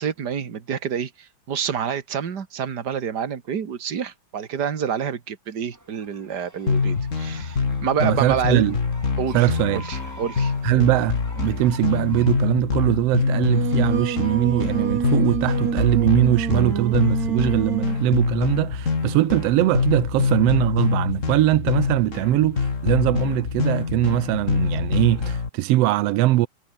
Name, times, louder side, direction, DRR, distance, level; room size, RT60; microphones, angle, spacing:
voice 1, 0.0-8.6 9.2-10.5, right 7 dB, 40° right, 2.0 m, -28 dB
sound 1, 5.7-12.4, right 1 dB, 5° right, 2.4 m, -45 dB
sound 2, 6.7-25.5, left 5 dB, 30° left, 1.9 m, -25 dB
voice 2, 8.0-8.8 9.3-9.9 10.6-26.5, right 17 dB, 90° right, 1.4 m, -21 dB
Singing, 13.2-18.1, right 7 dB, 65° right, 3.7 m, -27 dB
omnidirectional pair, 3.5 m